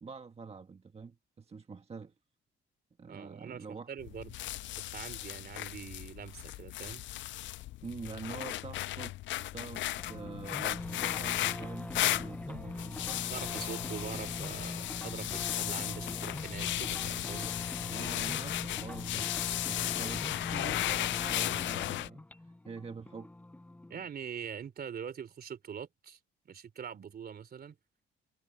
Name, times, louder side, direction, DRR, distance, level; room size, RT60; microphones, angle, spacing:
voice 1, 0.0-2.1 3.0-3.9 7.8-13.2 17.9-23.3, right 5 dB, 30° right, 1.4 m, -46 dB
voice 2, 3.1-4.3 4.7-7.0 13.3-17.6 23.9-26.2 26.4-27.8, right 7 dB, 50° right, 3.2 m, -43 dB
sound 1, 4.0-22.1, left 15 dB, 70° left, 0.4 m, -36 dB
sound 2, 10.0-24.1, left 1 dB, 5° left, 0.6 m, -42 dB
cardioid pair, 90°, 20 cm